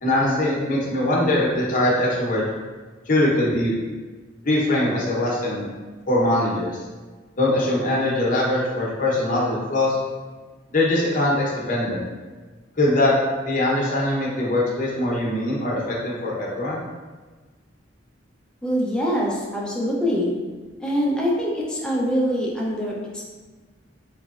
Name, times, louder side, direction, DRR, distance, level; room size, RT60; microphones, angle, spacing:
voice 1, 0.0-2.4 3.1-3.7 4.4-5.7 6.1-6.8 7.4-10.0 10.7-12.1 12.8-13.1 13.4-16.8, left 1 dB, 45° left, -4 dB, 0.8 m, -22 dB
voice 2, 18.6-20.3 20.8-23.2, equal, 5° left, -4 dB, 0.5 m, -24 dB
3.8 x 3.0 x 2.4 m, 1.4 s
head